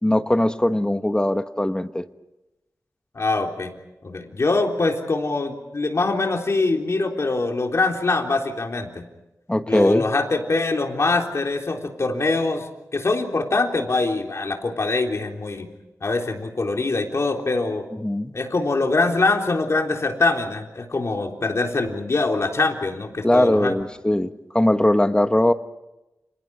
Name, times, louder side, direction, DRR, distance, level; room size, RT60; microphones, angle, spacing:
voice 1, 0.0-2.0 9.5-10.0 18.0-18.3 23.2-25.5, left 1 dB, 15° left, 10 dB, 1.2 m, -20 dB
voice 2, 3.1-3.7 4.0-9.1 9.7-15.7 16.0-17.9 18.3-23.8, left 3 dB, 55° left, 2 dB, 3.7 m, -23 dB
30.0 x 27.0 x 4.9 m, 0.94 s
wide cardioid pair, 80°, 6 cm